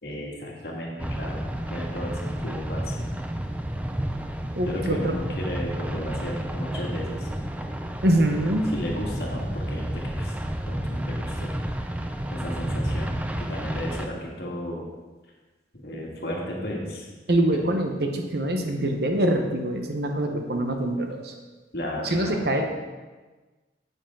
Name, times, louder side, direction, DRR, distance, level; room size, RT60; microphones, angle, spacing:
voice 1, 0.0-3.2 4.7-7.3 8.7-10.4 10.7-11.5 12.3-14.8 15.8-17.1 17.5-17.6 21.7-22.4, equal, 60° left, -2 dB, 1.9 m, -34 dB
sound 1, 1.0-14.1, right 1 dB, 10° right, 0.4 m, -31 dB
voice 2, 4.5-5.1 8.0-8.7 17.3-21.3 22.0-22.7, right 1 dB, 60° right, 4 dB, 1.0 m, -24 dB
8.8 x 8.3 x 3.8 m, 1.3 s
head